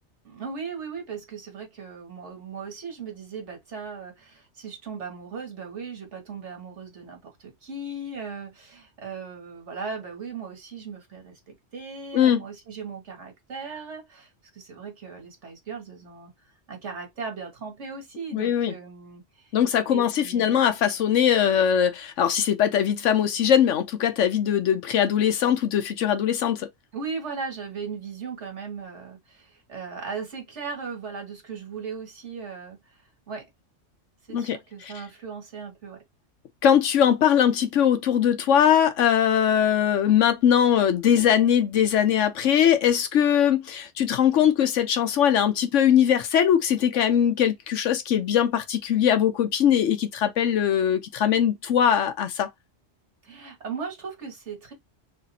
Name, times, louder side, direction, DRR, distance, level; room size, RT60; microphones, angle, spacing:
voice 1, 0.2-16.3 16.7-19.6 19.9-20.6 26.9-33.5 34.3-36.0 53.2-54.7, right 5 dB, 65° right, 1.7 m, -37 dB
voice 2, 18.3-18.7 19.5-26.7 34.3-34.6 34.8-34.9 36.6-52.5, left 9 dB, 75° left, 1.1 m, -21 dB
3.3 x 2.5 x 4.1 m
omnidirectional pair, 1.3 m